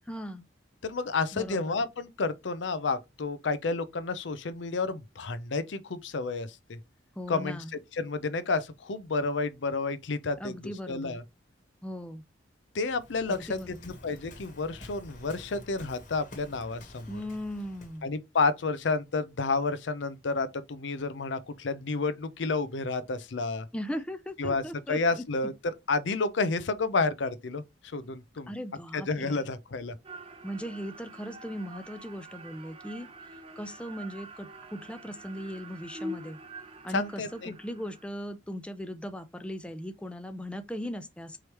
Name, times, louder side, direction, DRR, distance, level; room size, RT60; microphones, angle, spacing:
voice 1, 0.1-0.4 1.3-1.8 7.2-7.7 10.4-11.2 11.8-12.2 13.3-13.9 17.1-18.1 23.7-25.2 28.5-29.5 30.4-33.1 33.6-36.4 36.8-41.4, equal, 5° left, 0.4 m, -38 dB
voice 2, 0.8-6.8 7.3-7.6 7.9-10.5 10.9-11.2 12.7-13.6 13.9-17.2 18.0-23.7 24.4-24.6 24.9-25.5 25.9-28.5 28.9-29.9 36.9-37.5, left 3 dB, 75° left, 0.6 m, -30 dB
Waves surf, 12.8-18.1, left 1 dB, 45° left, 1.4 m, -49 dB
sound 1, 30.0-38.1, right 1 dB, 30° right, 0.6 m, -45 dB
4.8 x 3.2 x 2.9 m
head